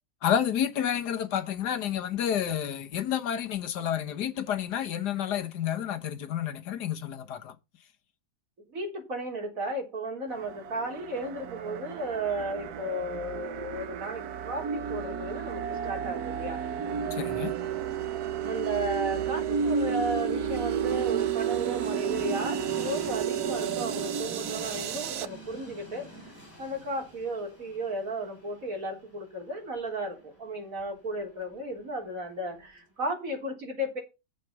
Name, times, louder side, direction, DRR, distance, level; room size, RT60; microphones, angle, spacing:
voice 1, 0.2-7.5 17.1-17.5, left 9 dB, 80° left, 1.7 m, -30 dB
voice 2, 8.7-16.6 18.4-26.1 26.6-34.0, right 1 dB, 55° right, 4.2 m, -34 dB
sound 1, 10.3-25.3, right 7 dB, 70° right, 1.3 m, -32 dB
Train, 16.9-32.9, equal, 40° left, 4.9 m, -50 dB
9.0 x 7.9 x 5.7 m
omnidirectional pair, 1.8 m